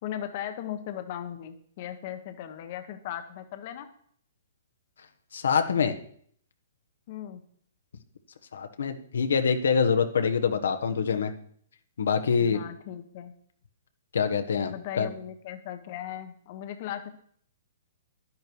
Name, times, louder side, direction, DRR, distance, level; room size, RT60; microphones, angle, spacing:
voice 1, 0.0-3.9 7.1-7.4 12.4-13.3 14.7-17.1, left 11 dB, 40° left, 7 dB, 1.2 m, -37 dB
voice 2, 5.3-6.0 8.5-11.3 12.0-12.6 14.1-15.1, left 6 dB, 80° left, 7 dB, 1.3 m, -25 dB
11.0 x 10.5 x 4.7 m, 0.63 s
hypercardioid pair, 155°, 0 cm